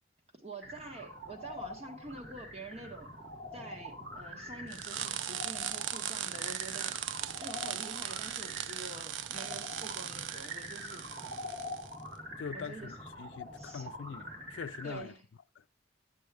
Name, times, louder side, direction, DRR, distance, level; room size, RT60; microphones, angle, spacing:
voice 1, 0.4-3.1 3.5-7.0 7.4-11.1 12.3-12.9 13.6-13.9 14.8-15.2, right 2 dB, 35° right, 1.5 m, -47 dB
sound 1, 0.6-15.1, equal, 5° left, 0.5 m, -56 dB
sound 2, 0.6-15.0, left 1 dB, 60° right, 1.9 m, -46 dB
sound 3, 4.7-11.9, right 10 dB, 85° right, 0.4 m, -38 dB
voice 2, 12.4-15.2 15.6-15.7, left 6 dB, 80° left, 0.4 m, -43 dB
10.5 x 7.5 x 3.4 m
head